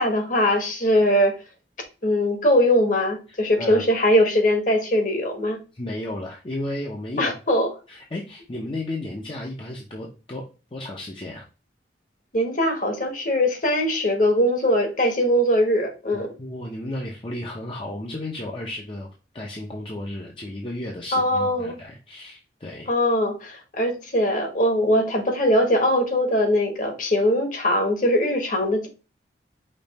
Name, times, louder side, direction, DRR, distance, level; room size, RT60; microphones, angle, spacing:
voice 1, 0.0-1.4 2.0-5.6 7.2-7.7 12.3-16.3 21.1-21.8 22.9-28.9, equal, 45° left, 1.2 m, -21 dB
voice 2, 5.7-7.3 7.9-10.5 10.7-11.4 16.4-19.1 19.3-22.9, left 1 dB, 30° left, 0.6 m, -33 dB
5.3 x 2.5 x 4.1 m
head